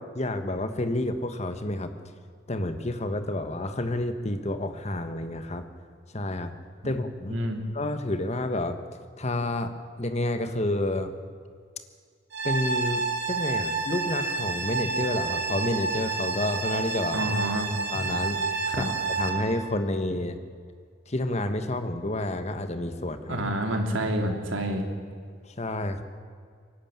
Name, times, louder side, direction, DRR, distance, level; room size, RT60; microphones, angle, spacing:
voice 1, 0.0-1.9 2.5-5.6 6.1-6.5 6.8-7.4 7.7-8.8 9.2-9.7 10.0-11.1 12.4-13.0 13.3-17.2 17.9-20.4 21.1-23.5 25.4-26.0, left 1 dB, 35° left, 9 dB, 1.4 m, -29 dB
voice 2, 7.3-7.6 17.1-17.7 18.7-18.9 23.3-24.9, right 1 dB, 85° right, 3 dB, 3.1 m, -28 dB
sound 1, 12.3-19.3, right 4 dB, 60° right, 3.2 m, -29 dB
26.5 x 12.0 x 8.9 m, 2.1 s
head